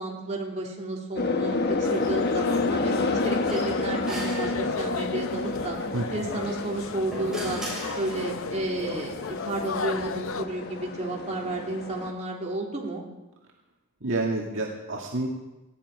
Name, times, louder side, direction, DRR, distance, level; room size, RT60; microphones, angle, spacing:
voice 1, 0.0-5.8 6.1-7.6 7.9-13.0, right 2 dB, 35° right, -2 dB, 3.2 m, -32 dB
sound 1, 1.2-12.1, left 3 dB, 50° left, 1.2 m, -30 dB
sound 2, 1.8-10.5, left 4 dB, 65° left, 0.8 m, -35 dB
sound 3, 3.5-5.2 6.6-8.6, equal, 5° right, 7.2 m, -38 dB
voice 2, 5.9-6.3 14.0-15.3, right 2 dB, 60° right, -1 dB, 2.0 m, -29 dB
19.0 x 15.0 x 4.9 m, 1.0 s
head